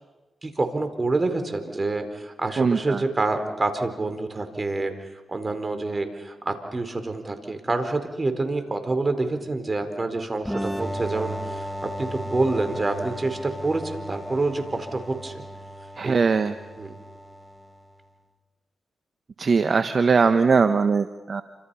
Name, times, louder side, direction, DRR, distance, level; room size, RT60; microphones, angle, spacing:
voice 1, 0.4-4.9 5.3-15.4 16.0-16.1 16.8-17.0, right 3 dB, 35° right, 8 dB, 4.4 m, -27 dB
voice 2, 2.6-3.0 16.0-16.5 19.4-21.4, right 5 dB, 55° right, 10 dB, 1.2 m, -20 dB
sound 1, 10.5-17.9, equal, 5° right, 2.5 m, -35 dB
29.0 x 26.0 x 5.7 m, 1.1 s
supercardioid pair, 45°, 0 cm